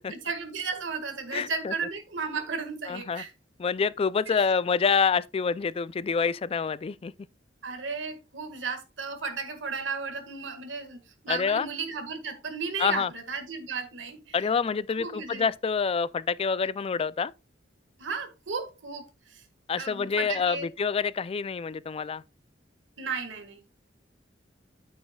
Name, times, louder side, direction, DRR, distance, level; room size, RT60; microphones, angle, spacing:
voice 1, 0.1-3.3 4.3-4.4 7.6-11.0 11.2-14.4 15.0-15.4 18.0-19.4 19.8-20.7 23.0-23.7, right 5 dB, 75° right, 1.7 m, -34 dB
voice 2, 1.3-1.7 2.9-3.2 3.6-7.1 11.3-11.7 12.8-13.1 14.3-17.3 19.7-22.2, left 5 dB, 30° left, 0.3 m, -27 dB
9.4 x 8.8 x 2.3 m
head